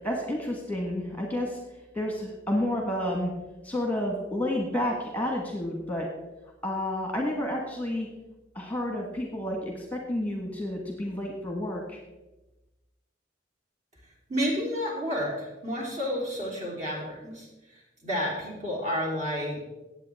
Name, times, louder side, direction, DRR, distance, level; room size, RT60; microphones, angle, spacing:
voice 1, 0.0-1.6 1.9-3.3 3.6-6.1 6.6-8.1 8.5-12.0, left 1 dB, 10° left, 1 dB, 1.4 m, -30 dB
voice 2, 14.1-19.6, equal, 40° right, -2 dB, 3.5 m, -31 dB
18.0 x 8.0 x 3.6 m, 1.0 s
head